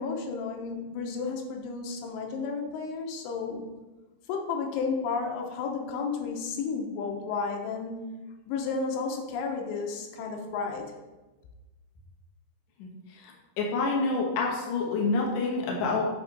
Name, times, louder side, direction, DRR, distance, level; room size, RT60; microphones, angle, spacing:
voice 1, 0.0-3.6 4.3-8.2 8.5-10.9, left 4 dB, 90° left, 2 dB, 3.1 m, -32 dB
voice 2, 13.6-16.0, left 3 dB, 65° left, -2 dB, 2.4 m, -27 dB
8.1 x 3.5 x 5.2 m, 1.1 s
omnidirectional pair, 4.8 m